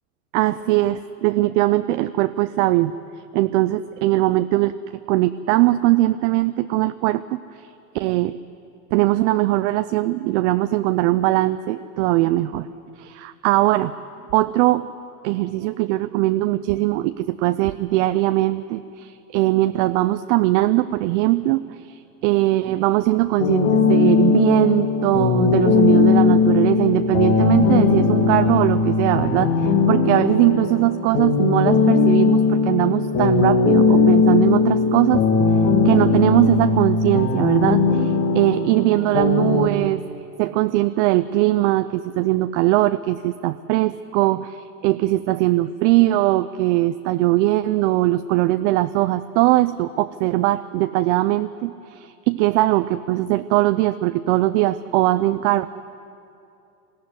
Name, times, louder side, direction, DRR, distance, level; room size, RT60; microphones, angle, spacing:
voice 1, 0.3-2.9 3.3-4.8 5.1-7.7 7.9-8.4 8.9-12.7 13.0-13.9 14.3-14.9 15.2-35.2 35.8-40.0 40.4-55.7, right 17 dB, 50° right, 11 dB, 0.6 m, -20 dB
sound 1, 23.4-39.7, left 5 dB, 45° left, 2.3 m, -18 dB
20.5 x 15.0 x 9.5 m, 2.6 s
hypercardioid pair, 100°, 46 cm